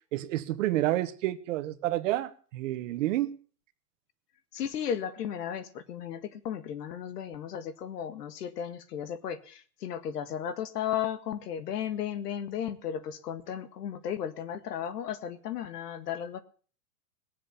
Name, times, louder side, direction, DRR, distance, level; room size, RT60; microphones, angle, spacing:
voice 1, 0.1-3.4, right 15 dB, 50° right, 1.3 m, -29 dB
voice 2, 4.5-16.4, left 9 dB, 80° left, 1.9 m, -35 dB
20.5 x 7.6 x 7.0 m
supercardioid pair, 155°, 47 cm